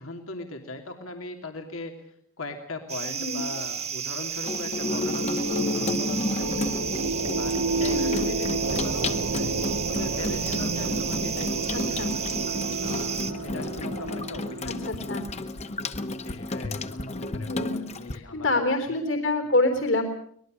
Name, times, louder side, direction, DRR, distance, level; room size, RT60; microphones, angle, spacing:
voice 1, 0.0-6.8 7.4-9.6 9.9-12.0 12.8-15.0 16.2-18.5 18.9-19.0, left 2 dB, 85° left, 4 dB, 2.9 m, -39 dB
sound 1, 2.9-13.3, right 7 dB, 30° right, 1.1 m, -33 dB
Water tap faucet / Sink (filling or washing), 4.4-18.2, left 2 dB, 30° left, 1.2 m, -32 dB
sound 2, 4.6-15.2, right 2 dB, 70° right, 0.8 m, -31 dB
voice 2, 7.9-8.3 11.7-12.1 14.8-15.3 17.5-20.0, left 2 dB, 65° left, 6 dB, 3.6 m, -27 dB
24.5 x 20.5 x 6.5 m, 0.65 s
head